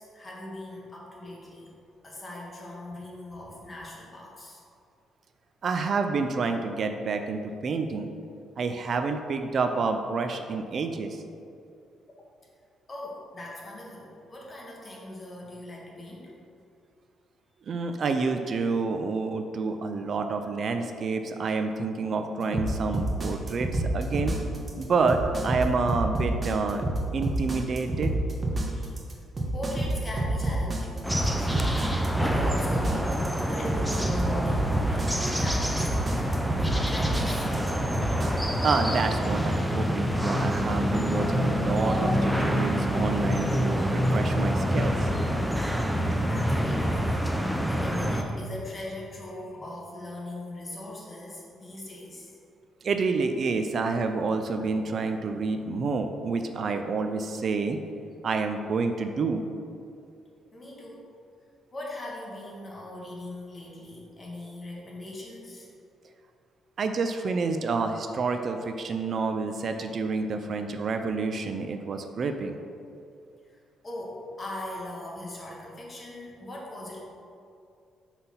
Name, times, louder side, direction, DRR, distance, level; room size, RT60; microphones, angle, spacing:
voice 1, 0.0-1.7 2.0-4.6 12.9-16.3 23.5-23.6 28.7-28.9 29.5-37.5 46.2-52.4 60.5-61.1 61.7-65.7 73.5-73.6 73.8-77.0, left 1 dB, 30° left, -3 dB, 1.6 m, -40 dB
voice 2, 5.6-8.1 8.6-11.2 17.7-24.4 24.8-26.8 27.1-28.1 38.6-45.1 52.8-57.8 58.2-59.4 66.8-72.6, right 4 dB, 50° right, 6 dB, 0.4 m, -28 dB
sound 1, 22.5-38.3, right 1 dB, 30° right, 1.2 m, -28 dB
sound 2, 31.0-48.2, equal, ahead, 0.6 m, -26 dB
5.8 x 4.0 x 5.6 m, 2.5 s
cardioid pair, 90°, 0 cm